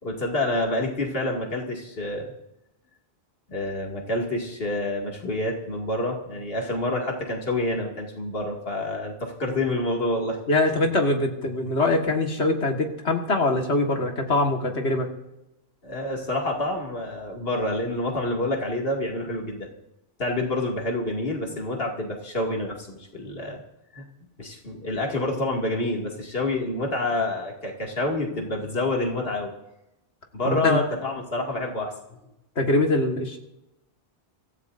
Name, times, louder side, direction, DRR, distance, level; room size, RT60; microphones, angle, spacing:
voice 1, 0.0-2.3 3.5-10.4 15.8-19.7 20.2-23.6 23.9-24.1 24.4-29.5 30.3-31.9, left 1 dB, 60° left, 0 dB, 2.5 m, -28 dB
voice 2, 10.5-15.1 30.5-30.8 32.6-33.4, left 2 dB, 85° left, 3 dB, 2.0 m, -23 dB
25.5 x 14.5 x 2.6 m, 0.91 s
omnidirectional pair, 1.1 m